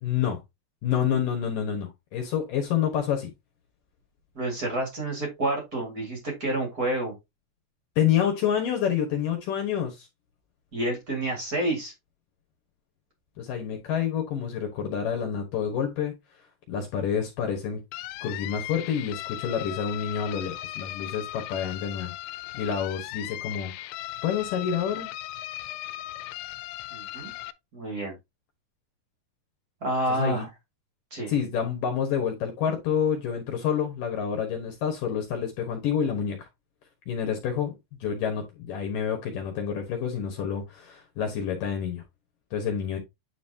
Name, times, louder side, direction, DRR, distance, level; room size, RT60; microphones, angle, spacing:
voice 1, 0.0-0.4 0.8-3.3 8.0-10.1 13.4-16.2 16.7-17.8 18.2-22.1 22.5-23.7 24.2-25.1 30.1-30.5 31.3-36.5 37.1-42.0 42.5-43.0, left 8 dB, 65° left, 2.3 m, -28 dB
voice 2, 4.3-7.1 10.7-11.9 26.9-27.3 27.7-28.1 29.8-30.5 31.1-31.3, right 1 dB, 50° right, 1.0 m, -29 dB
sound 1, 17.9-27.5, left 16 dB, 85° left, 2.8 m, -37 dB
9.7 x 4.1 x 2.7 m
omnidirectional pair, 5.1 m